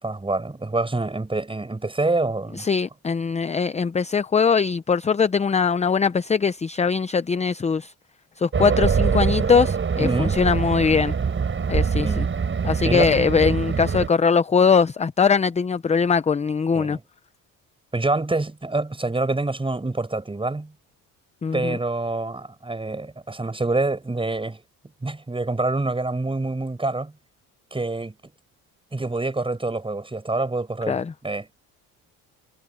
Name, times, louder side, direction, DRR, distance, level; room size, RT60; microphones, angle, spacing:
voice 1, 0.0-2.6 10.0-10.4 12.0-12.3 12.8-13.1 16.7-17.0 17.9-20.7 21.5-24.6 25.0-27.1 27.7-28.3 28.9-31.5, right 2 dB, 15° right, 6.7 m, -26 dB
voice 2, 2.6-7.9 8.4-11.1 11.7-12.3 12.6-17.0 21.4-21.8 30.9-31.1, left 5 dB, 20° left, 0.6 m, -21 dB
Race car auto racing, 8.5-14.1, right 6 dB, 35° right, 4.5 m, -24 dB
cardioid pair, 105°, 36 cm